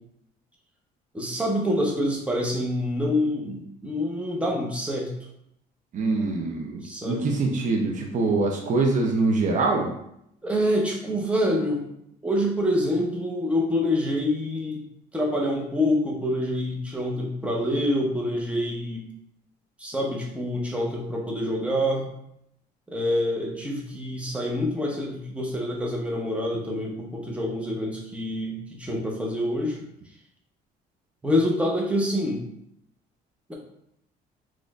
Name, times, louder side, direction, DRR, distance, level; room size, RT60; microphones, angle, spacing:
voice 1, 1.1-5.1 6.8-7.3 10.4-11.8 12.2-14.8 15.1-19.0 19.8-22.1 22.9-29.8 31.2-32.4, left 1 dB, 5° right, -2 dB, 0.8 m, -26 dB
voice 2, 5.9-9.9, right 3 dB, 50° right, 1 dB, 0.6 m, -24 dB
3.9 x 3.1 x 2.4 m, 0.76 s
cardioid pair, 110°, 17 cm